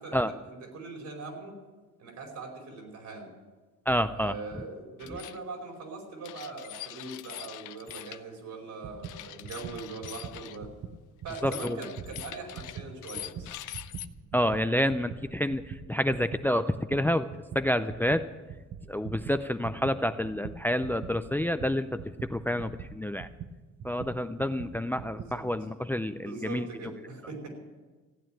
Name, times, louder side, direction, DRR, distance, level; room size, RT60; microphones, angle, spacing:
voice 1, 0.0-1.6 2.0-3.3 4.1-10.7 11.2-13.6 25.1-25.4 26.2-27.5, right 3 dB, 75° right, 0 dB, 4.8 m, -41 dB
voice 2, 3.9-4.3 11.4-11.8 14.3-17.3 17.5-18.3 18.9-23.3 23.8-26.9, equal, 5° left, 11 dB, 0.5 m, -28 dB
sound 1, 5.0-5.4 6.2-8.2 9.0-10.6 11.3-14.1, left 14 dB, 85° left, 0.6 m, -43 dB
sound 2, 8.8-11.6 11.9-25.4, right 7 dB, 55° right, 1.1 m, -43 dB
15.5 x 9.0 x 9.1 m, 1.3 s
cardioid pair, 90°, 30 cm